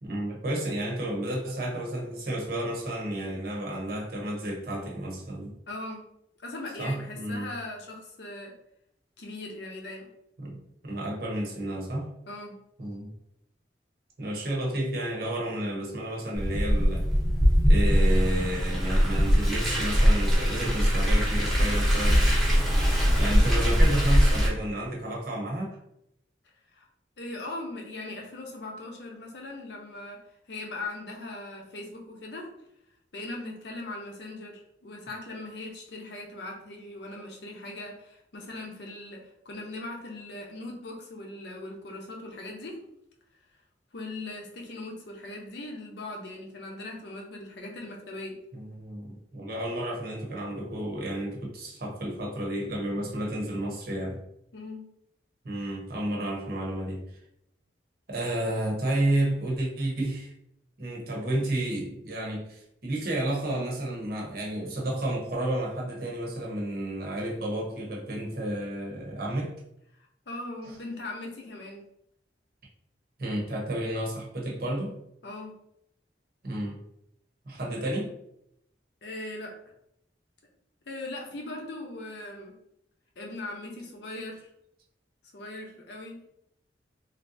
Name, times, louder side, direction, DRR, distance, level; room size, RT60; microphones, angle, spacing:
voice 1, 0.0-5.5 6.7-7.6 10.4-12.1 12.8-13.1 14.2-17.0 17.7-22.3 23.2-25.8 48.5-54.2 55.4-57.1 58.1-60.3 60.8-69.5 70.6-70.8 73.2-75.0 76.4-76.8 77.5-78.1, right 1 dB, 55° right, -2 dB, 0.8 m, -31 dB
voice 2, 5.7-6.1 6.4-8.5 9.2-10.1 12.3-12.6 26.7-26.9 27.2-30.2 30.5-32.5 33.1-42.8 43.9-48.4 54.5-54.9 70.3-71.8 75.2-75.5 79.0-79.5 80.9-82.6 83.2-84.5 85.3-86.2, left 2 dB, 70° left, 1 dB, 0.7 m, -39 dB
Car, 16.3-24.5, equal, ahead, 0.8 m, -22 dB
3.3 x 2.6 x 2.6 m, 0.77 s
head